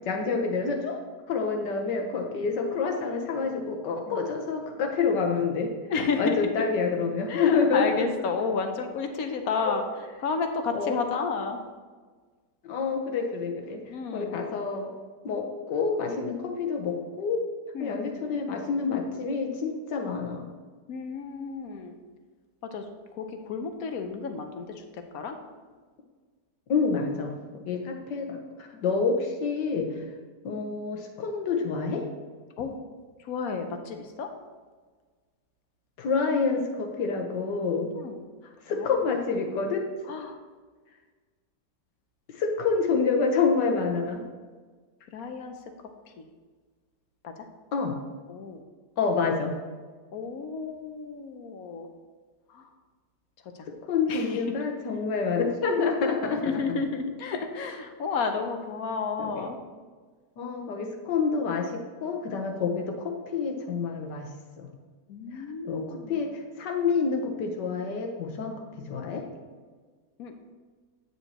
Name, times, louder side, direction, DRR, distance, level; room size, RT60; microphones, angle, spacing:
voice 1, 0.1-1.0 1.3-5.7 6.2-8.0 9.7-9.8 10.7-11.0 12.6-13.8 14.1-14.9 15.2-17.4 17.8-20.5 26.7-27.3 27.7-28.4 28.8-29.9 30.4-32.1 36.0-37.9 38.7-39.9 42.3-44.2 47.7-47.9 49.0-49.5 53.9-56.6 59.2-59.5 60.4-64.3 64.6-64.7 65.3-69.3, left 5 dB, 80° left, 3 dB, 1.6 m, -28 dB
voice 2, 5.9-6.5 7.3-9.8 10.2-11.6 13.9-14.4 17.7-18.2 20.9-22.0 22.7-22.8 23.1-25.4 32.6-32.8 33.2-34.3 37.9-38.2 38.8-38.9 40.1-40.4 45.1-45.5 47.2-47.3 48.3-48.6 50.1-51.9 52.5-52.7 54.1-54.4 56.3-59.6 65.1-66.2 70.2-70.3, left 5 dB, 65° left, 6 dB, 1.1 m, -32 dB
8.7 x 7.0 x 2.9 m, 1.5 s
omnidirectional pair, 1.8 m